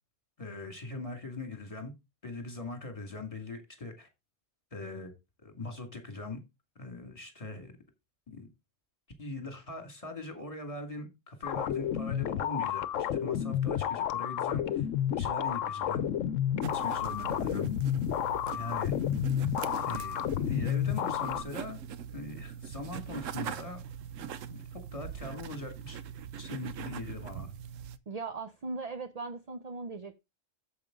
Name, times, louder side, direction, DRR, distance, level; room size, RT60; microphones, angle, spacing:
voice 1, 0.4-1.9 2.2-4.1 4.7-5.1 5.4-6.4 6.8-7.7 8.3-8.5 9.2-14.9 15.1-16.1 16.7-17.7 18.5-18.9 19.8-21.8 22.1-23.8 24.5-26.0 26.4-27.5, left 2 dB, 25° left, 2.3 m, -41 dB
sound 1, 11.4-21.4, left 10 dB, 80° left, 1.0 m, -31 dB
sound 2, 16.6-28.0, right 8 dB, 85° right, 1.1 m, -42 dB
voice 2, 28.1-30.1, right 3 dB, 40° right, 0.7 m, -38 dB
8.7 x 7.4 x 3.8 m
omnidirectional pair, 1.3 m